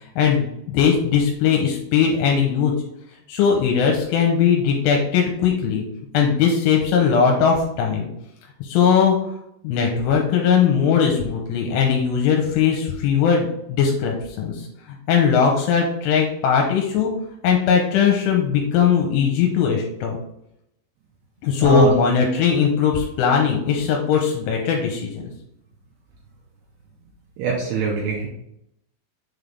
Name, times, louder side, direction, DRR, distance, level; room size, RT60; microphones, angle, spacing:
voice 1, 0.2-2.7 3.3-5.8 6.1-8.1 8.6-9.2 9.6-14.7 15.1-17.1 17.4-20.2 21.4-25.3, left 7 dB, 85° left, 1 dB, 3.2 m, -19 dB
voice 2, 21.6-21.9 27.4-28.3, right 5 dB, 75° right, -2 dB, 2.5 m, -22 dB
7.1 x 4.1 x 3.4 m, 0.79 s
omnidirectional pair, 5.7 m